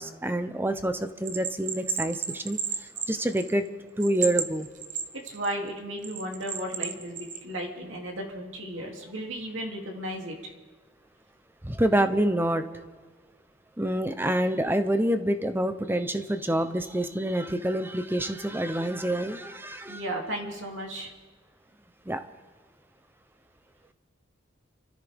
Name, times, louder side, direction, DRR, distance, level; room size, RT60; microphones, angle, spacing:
voice 1, 0.0-3.7 4.0-4.7 11.6-12.8 13.8-20.0 22.1-22.2, right 1 dB, 10° right, 9 dB, 0.7 m, -27 dB
Bell, 1.3-3.7 4.0-5.5 6.0-7.4, right 7 dB, 40° right, 1.0 m, -32 dB
voice 2, 5.1-10.5 19.9-21.1, right 1 dB, 80° right, 0 dB, 2.8 m, -35 dB
29.5 x 14.0 x 3.6 m, 1.4 s
head